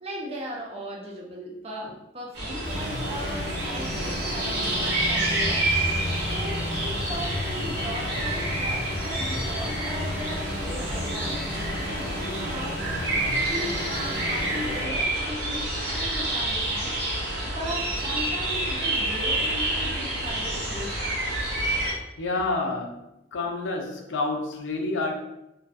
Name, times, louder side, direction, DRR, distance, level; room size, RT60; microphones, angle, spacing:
voice 1, 0.0-12.8 13.4-16.9 17.4-21.2, equal, 30° right, -2 dB, 0.5 m, -37 dB
sound 1, 2.3-21.9, right 1 dB, 80° right, 1.3 m, -28 dB
sound 2, 2.6-14.8, left 1 dB, 5° left, 0.7 m, -34 dB
voice 2, 22.2-23.0 23.3-25.2, left 3 dB, 85° left, 2 dB, 0.4 m, -28 dB
2.5 x 2.5 x 2.3 m, 0.88 s
head